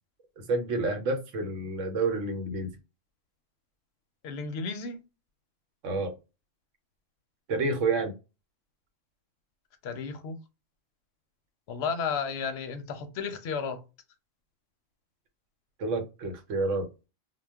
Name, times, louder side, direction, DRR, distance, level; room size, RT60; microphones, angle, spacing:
voice 1, 0.4-2.8 5.8-6.2 7.5-8.1 15.8-16.9, right 3 dB, 80° right, 1.1 m, -29 dB
voice 2, 4.2-5.0 9.8-10.4 11.7-13.8, left 5 dB, 65° left, 0.8 m, -33 dB
2.2 x 2.2 x 3.3 m
omnidirectional pair, 1.3 m